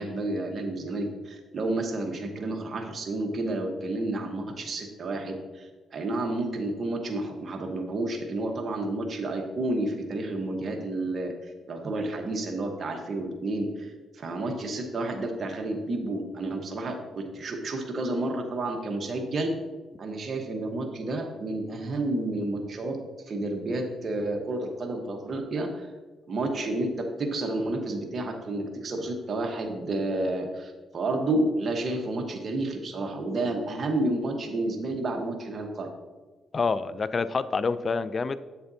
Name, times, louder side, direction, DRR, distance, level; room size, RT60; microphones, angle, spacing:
voice 1, 0.0-11.3 11.7-19.5 20.0-23.0 23.3-25.9 26.3-35.9, right 2 dB, 45° right, 2 dB, 1.1 m, -30 dB
voice 2, 36.5-38.4, left 4 dB, 35° left, 14 dB, 0.3 m, -27 dB
7.9 x 6.8 x 2.7 m, 1.3 s
cardioid pair, 90°, 0 cm